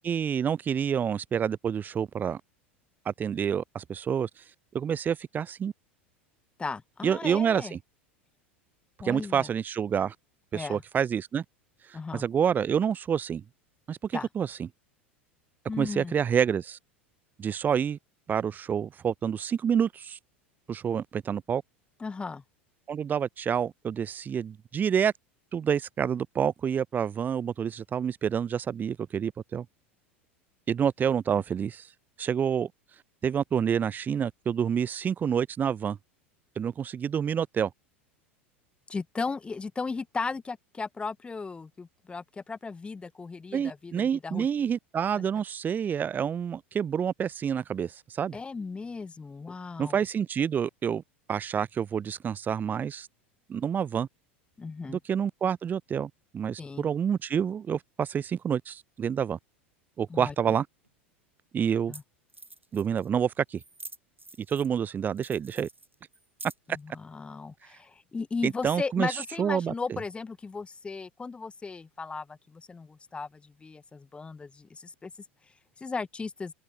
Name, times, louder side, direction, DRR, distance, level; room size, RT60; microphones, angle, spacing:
voice 1, 0.0-2.4 3.1-4.3 4.7-5.7 7.0-7.8 9.0-10.1 10.5-11.4 11.9-13.4 13.9-14.7 15.8-16.8 17.4-18.0 18.3-20.2 20.7-21.6 22.9-25.1 25.5-29.7 30.7-31.9 32.2-32.7 33.2-36.0 36.6-37.7 43.5-48.4 49.8-51.0 51.3-53.1 53.5-54.1 54.9-59.4 60.0-60.7 61.5-61.9 62.7-63.6 64.4-65.7 68.4-70.0, right 8 dB, 30° right, 4.3 m, -28 dB
voice 2, 6.6-7.8 9.0-9.5 10.5-10.8 11.9-12.2 14.1-14.3 15.7-16.2 22.0-22.4 38.9-44.5 48.3-50.0 54.6-55.0 56.6-56.9 60.1-60.6 61.9-62.0 66.7-75.1 75.8-76.5, left 4 dB, 15° left, 5.2 m, -36 dB
sound 1, 60.8-60.9 61.7-61.8 61.9-62.0 62.3-63.1 63.6-64.8 65.2-66.8, right 2 dB, 90° right, 6.6 m, -47 dB
open air
figure-of-eight pair, 80°, 7 cm